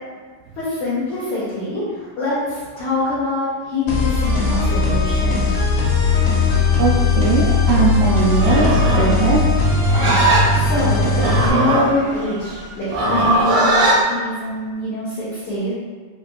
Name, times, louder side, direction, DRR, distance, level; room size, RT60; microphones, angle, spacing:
voice 1, 0.5-5.4 10.5-15.7, left 2 dB, 85° left, -11 dB, 1.6 m, -24 dB
sound 1, 3.9-11.5, left 4 dB, 70° left, 2.2 m, -18 dB
voice 2, 6.8-9.5, right 5 dB, 85° right, -2 dB, 2.3 m, -19 dB
Livestock farm animals working animals, 8.3-14.0, right 2 dB, 70° right, 1.8 m, -19 dB
7.5 x 3.1 x 2.3 m, 1.5 s
omnidirectional pair, 5.1 m